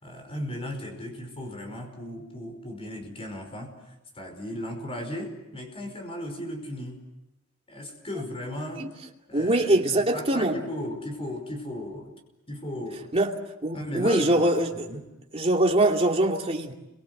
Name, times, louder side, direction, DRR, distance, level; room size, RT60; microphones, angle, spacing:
voice 1, 0.0-3.7 4.2-7.0 7.7-8.9 9.3-12.1 12.5-13.1 13.7-14.5 14.9-15.0, left 1 dB, 30° left, 5.3 m, -36 dB
voice 2, 9.3-10.6 13.1-13.3 13.6-14.7 15.3-16.7, right 1 dB, 30° right, 2.7 m, -23 dB
30.0 x 24.0 x 7.9 m
head